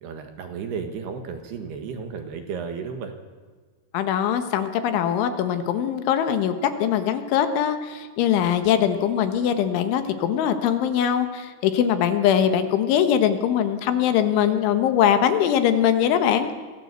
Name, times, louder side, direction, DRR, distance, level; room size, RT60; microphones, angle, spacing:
voice 1, 0.0-3.1, right 6 dB, 65° right, 6 dB, 3.4 m, -33 dB
voice 2, 3.9-16.5, left 9 dB, 75° left, 9 dB, 3.7 m, -22 dB
25.0 x 17.0 x 8.2 m, 1.5 s
omnidirectional pair, 5.7 m